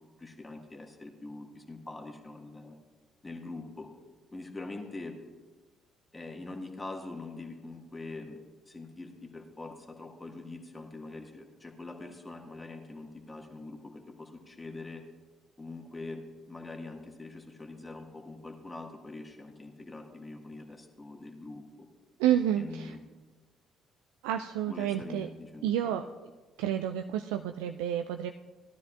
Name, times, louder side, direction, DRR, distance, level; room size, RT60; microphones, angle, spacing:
voice 1, 0.2-2.8 3.2-3.9 4.3-5.2 6.1-8.4 8.7-15.0 15.6-21.9 22.5-23.0 24.6-26.0, left 2 dB, 20° left, 3 dB, 1.6 m, -43 dB
voice 2, 22.2-22.9 24.2-25.3 25.6-26.0 26.6-28.3, right 10 dB, 70° right, 6 dB, 0.3 m, -29 dB
17.5 x 12.5 x 2.4 m, 1.3 s
figure-of-eight pair, 45°, 0 cm